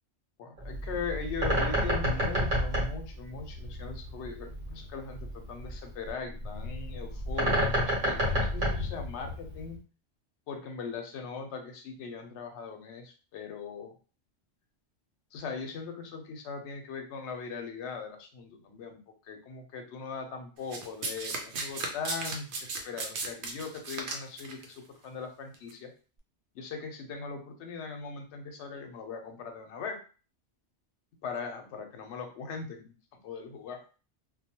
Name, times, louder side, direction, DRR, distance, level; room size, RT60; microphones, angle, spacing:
voice 1, 0.4-9.8 10.5-13.9 15.3-19.0 19.2-25.9 26.5-30.0 31.2-32.9 33.2-33.8, left 5 dB, 75° left, 5 dB, 0.9 m, -40 dB
Bird, 0.6-9.7, equal, 45° right, 1.0 m, -30 dB
Domestic sounds home sounds, 20.7-24.6 25.5-25.7, right 3 dB, 75° right, 0.8 m, -35 dB
2.2 x 2.2 x 2.8 m, 0.36 s
omnidirectional pair, 1.2 m